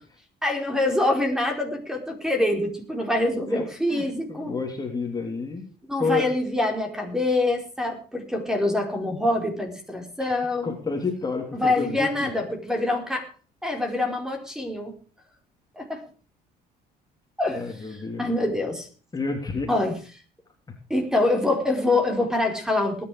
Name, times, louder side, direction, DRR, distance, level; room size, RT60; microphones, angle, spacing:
voice 1, 0.4-4.6 5.9-10.8 11.5-13.3 13.6-15.0 15.7-16.0 17.4-17.6 17.9-18.9 19.7-20.0 20.9-23.0, left 2 dB, 5° right, 4 dB, 4.6 m, -25 dB
voice 2, 3.9-5.7 6.0-6.3 10.2-10.3 10.6-12.3 17.5-18.3 19.1-19.7, left 4 dB, 25° left, 2 dB, 3.4 m, -29 dB
19.5 x 10.5 x 5.0 m, 0.39 s
cardioid pair, 110°, 17 cm